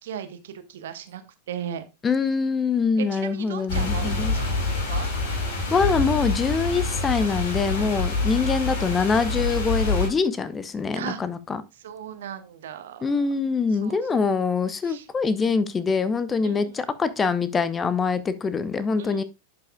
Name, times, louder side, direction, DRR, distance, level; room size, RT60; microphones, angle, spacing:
voice 1, 0.0-1.8 3.0-5.1 10.9-11.2 11.7-13.2 13.8-14.3 14.8-15.1 16.4-16.8 19.0-19.2, right 9 dB, 60° right, 1.2 m, -37 dB
voice 2, 2.0-4.3 5.7-11.6 13.0-19.2, left 5 dB, 20° left, 0.7 m, -24 dB
sound 1, 3.7-10.1, left 3 dB, 50° left, 3.7 m, -26 dB
11.5 x 5.6 x 2.3 m
figure-of-eight pair, 90°, 0 cm